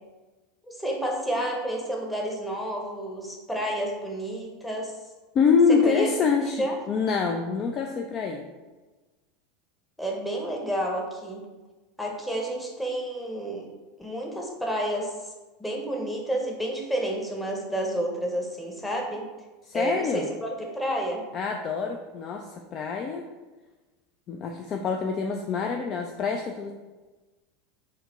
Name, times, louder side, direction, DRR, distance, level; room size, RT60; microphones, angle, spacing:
voice 1, 0.6-4.9 5.7-6.1 6.4-6.8 10.0-11.4 12.0-13.7 14.0-15.1 15.6-19.3 19.7-21.2, right 1 dB, 5° left, 0 dB, 0.8 m, -30 dB
voice 2, 5.3-8.4 19.7-20.3 21.3-23.2 24.3-26.7, left 5 dB, 40° left, 3 dB, 0.3 m, -25 dB
4.0 x 2.1 x 3.9 m, 1.2 s
hypercardioid pair, 85°, 0 cm